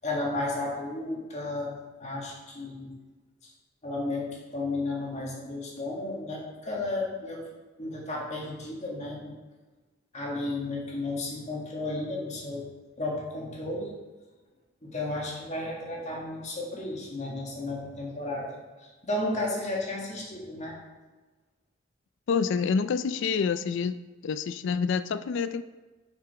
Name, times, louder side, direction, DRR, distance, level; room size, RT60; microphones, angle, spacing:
voice 1, 0.0-1.7 2.0-2.9 3.4-3.5 3.8-7.4 7.8-9.4 10.1-12.7 13.0-13.9 14.8-20.7, left 2 dB, 35° left, -2 dB, 1.9 m, -33 dB
voice 2, 22.3-24.0 24.2-25.6, left 6 dB, 65° left, 13 dB, 0.3 m, -27 dB
6.7 x 6.6 x 4.8 m, 1.2 s
head